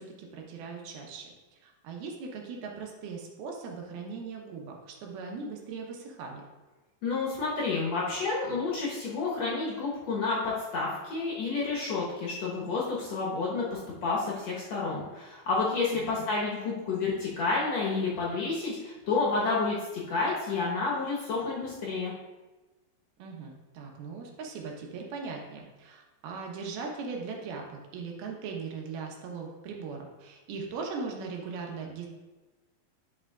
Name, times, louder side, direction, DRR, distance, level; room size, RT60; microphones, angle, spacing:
voice 1, 0.0-6.4 15.9-16.3 23.2-32.1, right 4 dB, 85° right, 1 dB, 2.9 m, -39 dB
voice 2, 7.0-22.1, left 4 dB, 60° left, -5 dB, 1.8 m, -30 dB
11.5 x 5.6 x 2.4 m, 1.2 s
omnidirectional pair, 4.4 m